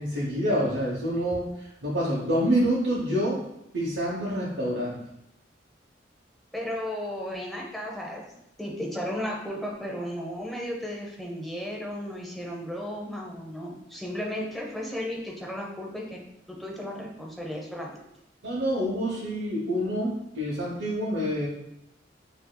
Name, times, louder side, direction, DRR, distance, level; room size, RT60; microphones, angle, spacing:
voice 1, 0.0-1.5 1.8-3.4 3.7-5.0 18.4-21.5, equal, 90° right, -6 dB, 0.9 m, -27 dB
voice 2, 6.5-16.2 16.5-18.0, equal, ahead, -2 dB, 0.8 m, -34 dB
6.4 x 2.8 x 2.3 m, 0.85 s
head